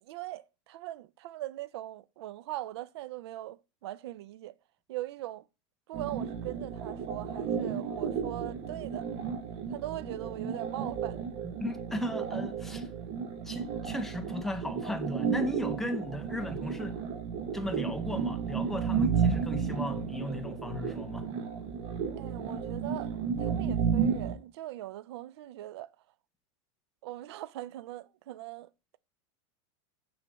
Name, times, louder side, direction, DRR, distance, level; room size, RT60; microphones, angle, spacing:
voice 1, 0.0-4.5 4.9-5.4 5.9-9.1 9.7-11.2 22.2-25.9 27.0-28.7, right 15 dB, 60° right, 0.5 m, -41 dB
sound 1, 5.9-24.3, right 6 dB, 30° right, 1.0 m, -33 dB
voice 2, 11.6-12.9 13.5-17.0 17.5-21.3, left 1 dB, ahead, 0.5 m, -36 dB
6.7 x 3.3 x 6.1 m
supercardioid pair, 165°, 16 cm